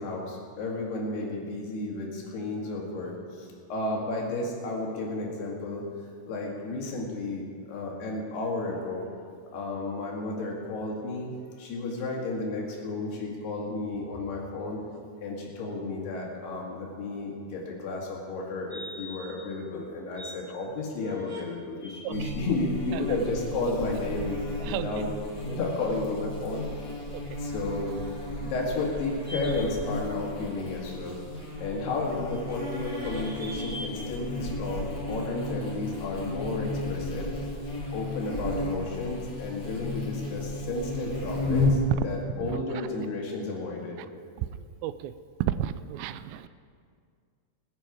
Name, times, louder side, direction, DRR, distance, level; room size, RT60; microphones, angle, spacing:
voice 1, 0.0-5.8 6.3-9.1 9.5-11.3 11.6-14.8 15.2-25.1 25.4-26.7 27.4-27.9 28.4-31.2 31.6-37.3 37.9-44.0, left 2 dB, 70° left, -2 dB, 4.0 m, -32 dB
sound 1, 18.7-19.4 19.8-20.3 20.8-21.4 21.8-22.4 29.2-29.6 32.3-33.9, left 1 dB, 15° right, 0.6 m, -40 dB
Buzz, 22.1-41.9, left 1 dB, 40° left, 1.6 m, -33 dB
voice 2, 42.4-42.9 44.0-44.1 44.4-44.5 44.8-45.1 45.4-46.5, right 12 dB, 90° right, 14 dB, 2.8 m, -33 dB
20.0 x 10.5 x 4.8 m, 2.2 s
omnidirectional pair, 5.0 m